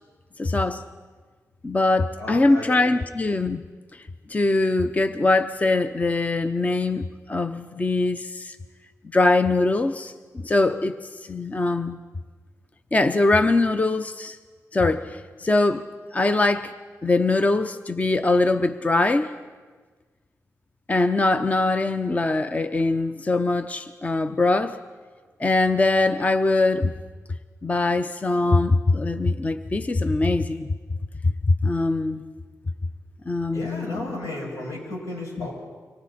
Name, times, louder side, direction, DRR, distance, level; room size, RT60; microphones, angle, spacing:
voice 1, 0.4-0.8 1.6-3.7 3.9-4.0 4.3-8.6 9.1-12.0 12.9-14.4 14.7-15.8 16.1-16.7 17.0-19.4 20.9-24.8 25.4-26.9 27.6-30.7 31.2-32.2 33.3-34.2 35.4-35.5, left 2 dB, 25° left, 10 dB, 0.7 m, -22 dB
voice 2, 2.2-2.7 33.5-35.5, left 1 dB, 90° left, -2 dB, 6.9 m, -34 dB
28.5 x 24.0 x 4.3 m, 1.4 s
cardioid pair, 85°, 6 cm